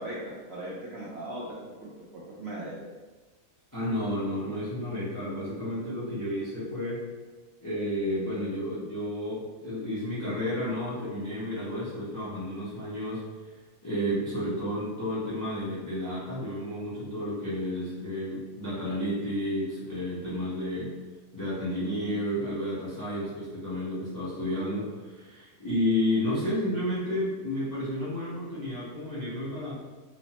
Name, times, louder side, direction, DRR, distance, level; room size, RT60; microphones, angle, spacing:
voice 1, 0.0-1.5 1.8-2.7, right 1 dB, 65° right, -6 dB, 0.6 m, -38 dB
voice 2, 3.7-7.1 7.6-13.2 13.8-20.9 21.3-29.7, left 1 dB, 25° left, -10 dB, 0.4 m, -31 dB
3.0 x 2.0 x 2.8 m, 1.3 s
omnidirectional pair, 1.5 m